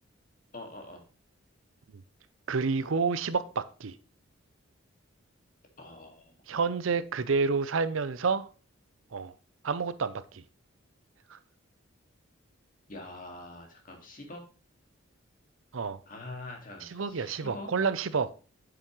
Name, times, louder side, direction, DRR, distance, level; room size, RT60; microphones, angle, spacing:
voice 1, 0.5-1.0 5.8-6.4 12.9-14.4 16.1-17.7, left 2 dB, 40° left, 2.1 m, -44 dB
voice 2, 2.5-4.0 6.5-8.5 9.1-9.3 9.6-10.4 11.3-11.4 15.7-16.0 16.8-18.3, right 5 dB, 75° right, 0.6 m, -29 dB
8.9 x 6.9 x 3.1 m
head